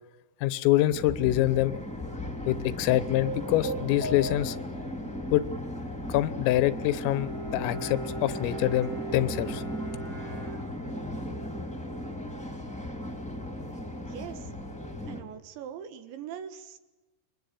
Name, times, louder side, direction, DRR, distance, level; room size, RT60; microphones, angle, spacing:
voice 1, 0.4-1.8 2.5-4.6 5.3-5.5 6.1-9.6, left 15 dB, 90° left, 15 dB, 3.7 m, -25 dB
sound 1, 0.9-15.2, left 1 dB, ahead, 1.9 m, -37 dB
sound 2, 2.8-4.9, right 2 dB, 50° right, 3.4 m, -37 dB
Bowed string instrument, 6.8-11.2, right 4 dB, 30° right, 1.5 m, -40 dB
voice 2, 14.0-14.5 15.1-16.8, right 8 dB, 70° right, 9 dB, 3.6 m, -41 dB
28.5 x 22.0 x 8.4 m, 1.1 s
omnidirectional pair, 5.8 m